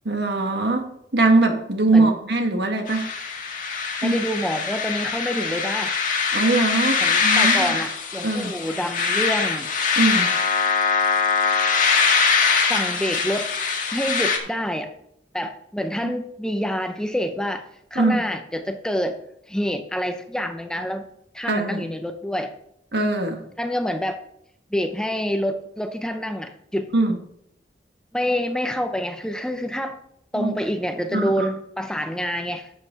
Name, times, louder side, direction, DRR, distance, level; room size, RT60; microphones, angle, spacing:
voice 1, 0.0-3.1 4.0-4.2 6.3-7.7 8.2-8.5 10.0-10.3 17.9-18.2 21.5-21.8 22.9-23.4 26.9-27.2 30.3-30.5 31.1-31.5, right 2 dB, 65° right, 4 dB, 1.6 m, -21 dB
sound 1, 2.9-14.4, left 5 dB, 50° left, 1.7 m, -22 dB
voice 2, 4.0-6.0 7.0-9.7 12.7-13.5 13.9-14.9 15.3-17.6 17.9-19.2 19.5-21.1 21.3-22.5 23.6-24.2 24.7-26.9 28.1-30.0 30.3-32.7, equal, 5° left, 6 dB, 0.6 m, -27 dB
11.5 x 7.8 x 3.9 m, 0.74 s
head